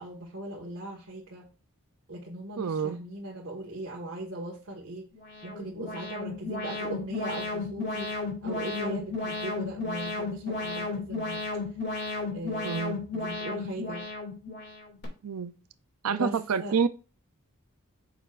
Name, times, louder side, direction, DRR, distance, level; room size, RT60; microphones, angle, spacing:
voice 1, 0.0-1.5 2.1-5.1 5.4-8.1 8.4-11.5 12.3-12.8 13.1-14.1 16.1-16.8, right 1 dB, 60° right, 1.6 m, -39 dB
voice 2, 2.6-3.0 12.6-13.0 15.2-15.5 16.0-16.9, right 6 dB, 80° right, 0.5 m, -28 dB
Alarm, 5.1-15.0, left 3 dB, 50° left, 2.4 m, -34 dB
9.2 x 6.7 x 2.5 m
head